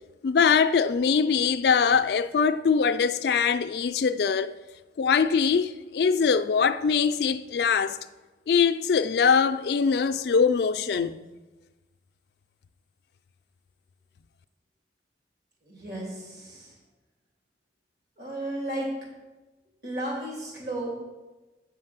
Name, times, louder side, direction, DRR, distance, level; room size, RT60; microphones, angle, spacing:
voice 1, 0.2-4.5 5.0-8.0 8.5-11.2, left 6 dB, 65° left, 0.4 m, -22 dB
voice 2, 15.7-16.7 18.2-18.9 19.8-20.9, right 1 dB, 60° right, 3.2 m, -34 dB
8.2 x 5.5 x 5.9 m
head